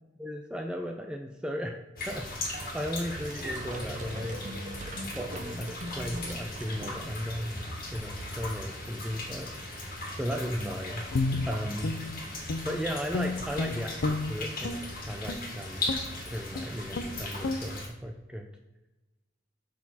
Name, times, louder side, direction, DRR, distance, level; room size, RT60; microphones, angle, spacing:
voice 1, 0.2-1.8 2.1-4.4 5.2-9.9 10.2-11.0 11.4-11.9 12.6-15.8 16.3-18.5, equal, 5° right, 2 dB, 0.5 m, -36 dB
sound 1, 2.0-17.9, left 2 dB, 55° left, 1.9 m, -38 dB
sound 2, 2.5-7.4, right 1 dB, 45° right, 0.8 m, -41 dB
Guitar, 11.1-12.8 13.1-14.8 15.2-15.5 15.9-16.1 16.5-16.7 16.9-17.1 17.4-17.6, left 3 dB, 90° left, 0.6 m, -31 dB
6.4 x 6.2 x 4.1 m, 1.0 s
head